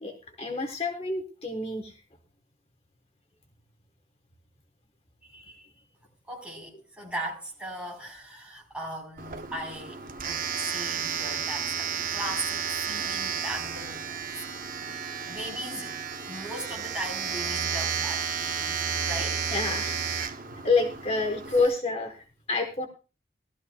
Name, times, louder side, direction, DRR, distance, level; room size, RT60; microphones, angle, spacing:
voice 1, 0.0-1.9 5.2-5.7 19.5-20.0 20.6-22.9, left 3 dB, 35° left, 1.1 m, -28 dB
voice 2, 6.3-14.1 14.9-16.0 16.3-19.5 21.5-21.6, right 1 dB, 5° right, 3.7 m, -38 dB
Domestic sounds home sounds, 9.2-21.6, right 7 dB, 50° right, 0.7 m, -32 dB
18.5 x 12.5 x 2.2 m
head